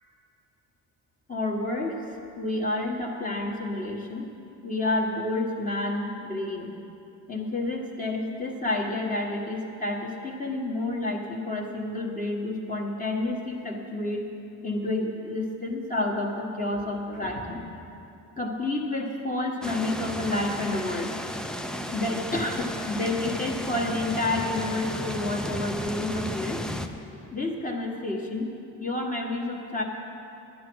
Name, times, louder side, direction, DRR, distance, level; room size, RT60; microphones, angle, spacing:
voice 1, 1.3-2.0 2.4-4.3 4.6-6.7 7.3-14.2 14.6-17.7 18.4-21.1 21.9-26.6 27.3-28.5 28.8-29.8, left 2 dB, 20° left, -1 dB, 1.3 m, -29 dB
sound 1, 19.6-26.9, left 1 dB, ahead, 0.4 m, -34 dB
11.0 x 10.0 x 6.2 m, 2.7 s
cardioid pair, 115°, 41 cm